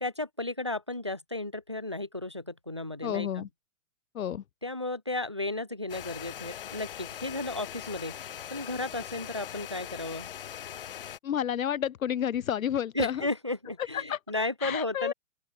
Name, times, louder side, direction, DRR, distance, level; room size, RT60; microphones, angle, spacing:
voice 1, 0.0-3.5 4.6-8.2 8.5-10.3 12.9-15.1, left 2 dB, 25° right, 0.4 m, -34 dB
voice 2, 3.0-3.5 4.1-4.4 11.2-13.2 13.9-14.2 14.6-15.1, left 9 dB, 75° left, 1.1 m, -30 dB
sound 1, 5.9-11.2, left 10 dB, 40° left, 1.9 m, -41 dB
open air
hypercardioid pair, 175°, 42 cm